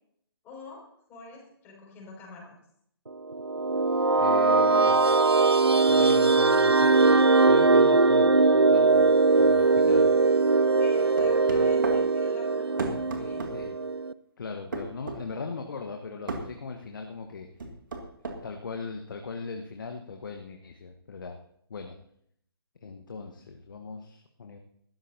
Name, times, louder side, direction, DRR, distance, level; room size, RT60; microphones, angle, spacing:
voice 1, 0.4-2.6 10.8-13.5, left 2 dB, 15° left, -2 dB, 5.7 m, -46 dB
sound 1, 3.3-14.1, right 3 dB, 85° right, 0.6 m, -21 dB
voice 2, 4.2-5.1 5.9-10.1 13.5-13.8 14.4-17.5 18.4-21.4 21.7-22.0 22.8-24.6, left 4 dB, 55° left, 4 dB, 1.3 m, -39 dB
sound 2, 11.2-12.0 12.8-13.5 14.7-15.2 16.3-16.5 17.6-18.4, right 3 dB, 55° right, 2.3 m, -33 dB
20.0 x 13.5 x 2.8 m, 0.69 s
figure-of-eight pair, 135°, 13 cm